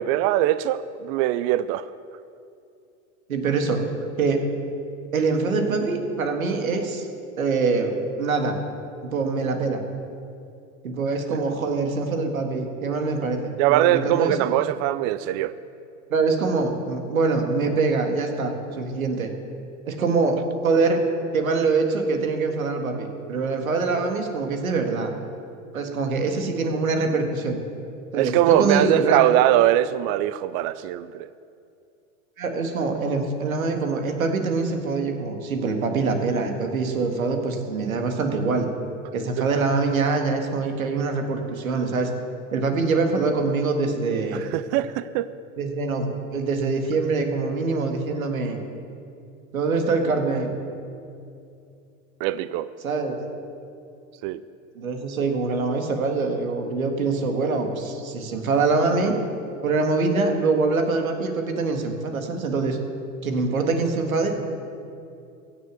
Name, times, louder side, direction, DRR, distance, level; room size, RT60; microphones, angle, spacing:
voice 1, 0.0-1.9 11.3-11.4 13.6-15.5 28.2-31.3 39.4-39.5 44.3-45.3 52.2-52.7 54.2-54.4, right 13 dB, 45° right, 15 dB, 0.5 m, -22 dB
voice 2, 3.3-3.8 4.2-4.4 5.1-7.1 7.4-8.6 9.0-9.8 10.8-14.5 16.1-19.3 19.9-21.0 21.3-25.1 25.7-27.6 28.1-29.3 32.4-38.7 39.1-42.1 42.5-44.4 45.6-48.6 49.5-50.5 52.8-53.2 54.8-59.2 59.6-62.8 63.2-64.3, right 4 dB, 90° right, 4 dB, 1.9 m, -24 dB
16.0 x 6.9 x 8.2 m, 2.6 s
hypercardioid pair, 95°, 40 cm